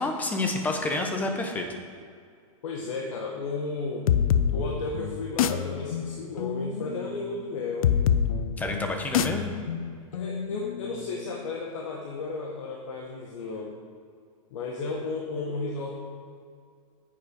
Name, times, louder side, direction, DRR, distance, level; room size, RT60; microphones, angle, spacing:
voice 1, 0.0-1.7 8.6-9.5, left 2 dB, 10° left, 3 dB, 1.0 m, -29 dB
voice 2, 2.6-4.1 4.5-7.9 10.1-13.8 14.5-16.0, left 3 dB, 65° left, -1 dB, 1.7 m, -33 dB
sound 1, 4.1-11.4, left 8 dB, 80° left, 0.6 m, -27 dB
9.5 x 8.0 x 5.2 m, 2.2 s
supercardioid pair, 160°, 18 cm